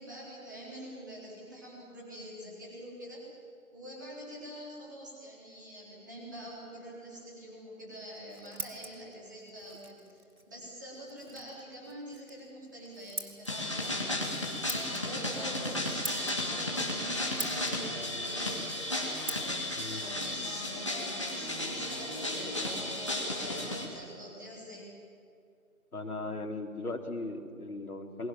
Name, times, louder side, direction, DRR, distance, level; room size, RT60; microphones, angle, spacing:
voice 1, 0.0-3.2 3.7-10.0 10.5-24.9, equal, 15° right, -6 dB, 4.0 m, -46 dB
Scissors, 8.0-21.6, right 2 dB, 75° right, 2.8 m, -47 dB
sound 1, 13.4-23.9, left 1 dB, 20° left, 2.4 m, -34 dB
voice 2, 25.9-28.3, left 2 dB, 85° left, 3 dB, 3.8 m, -38 dB
29.0 x 22.5 x 7.5 m, 2.5 s
figure-of-eight pair, 175°, 43 cm